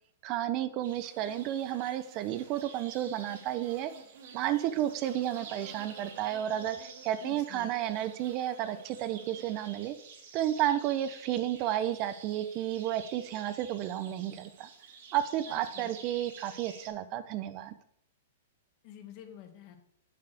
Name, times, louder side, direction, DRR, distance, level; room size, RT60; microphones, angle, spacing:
voice 1, 0.2-3.9 4.3-10.0 10.3-14.7 15.1-17.7, right 12 dB, 35° right, 12 dB, 0.6 m, -32 dB
sound 1, 0.8-16.9, right 5 dB, 60° right, 2.2 m, -50 dB
voice 2, 7.2-7.7 15.5-15.9 18.8-19.8, left 10 dB, 40° left, 5 dB, 1.6 m, -49 dB
7.1 x 4.7 x 6.3 m, 0.69 s
hypercardioid pair, 145°, 0 cm